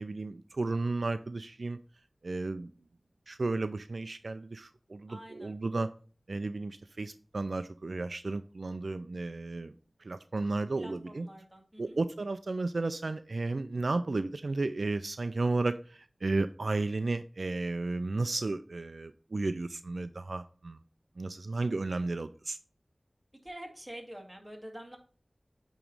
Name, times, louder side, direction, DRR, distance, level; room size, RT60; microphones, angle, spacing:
voice 1, 0.0-1.8 2.2-2.7 3.3-5.9 6.3-9.7 10.0-11.3 11.8-20.8 21.2-22.6, right 3 dB, 75° right, 11 dB, 0.3 m, -33 dB
voice 2, 5.1-5.5 10.7-12.0 23.4-25.0, right 1 dB, 10° right, 1 dB, 1.8 m, -46 dB
8.7 x 3.0 x 4.7 m, 0.39 s
wide cardioid pair, 50°, 0 cm